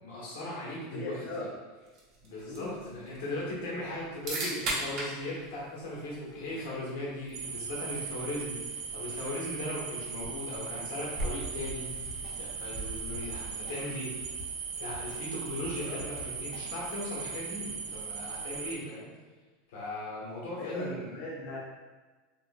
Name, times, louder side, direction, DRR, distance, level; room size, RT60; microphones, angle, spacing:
voice 1, 0.0-1.5 2.2-12.1 12.4-14.1 14.8-19.1 19.7-21.1, left 1 dB, 80° left, -5 dB, 0.9 m, -38 dB
voice 2, 0.8-1.5 2.4-2.8 15.8-16.0 20.6-21.6, left 2 dB, 45° left, -2 dB, 0.4 m, -39 dB
sound 1, 1.9-13.8, right 2 dB, 35° right, 0.6 m, -41 dB
sound 2, 7.3-18.8, right 5 dB, 80° right, 0.4 m, -39 dB
sound 3, 11.9-17.0, equal, ahead, 0.6 m, -48 dB
3.6 x 2.1 x 2.4 m, 1.3 s
supercardioid pair, 170°, 0 cm